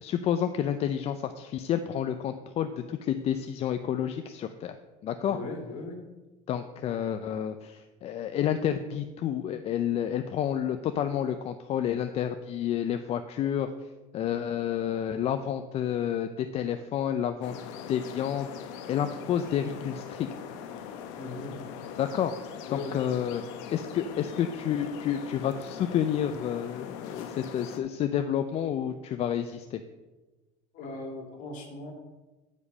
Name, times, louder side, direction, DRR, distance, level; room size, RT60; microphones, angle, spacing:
voice 1, 0.0-4.8 5.0-5.4 6.5-13.7 14.1-17.6 17.9-20.3 22.0-22.3 22.7-23.4 23.7-29.8, left 9 dB, 40° left, 9 dB, 0.5 m, -30 dB
voice 2, 5.3-6.0 21.2-21.7 22.7-23.0 30.7-31.9, left 3 dB, 55° left, 2 dB, 2.3 m, -38 dB
sound 1, 17.4-27.8, left 8 dB, 80° left, 0.9 m, -41 dB
10.0 x 5.1 x 5.4 m, 1.2 s
supercardioid pair, 120°, 16 cm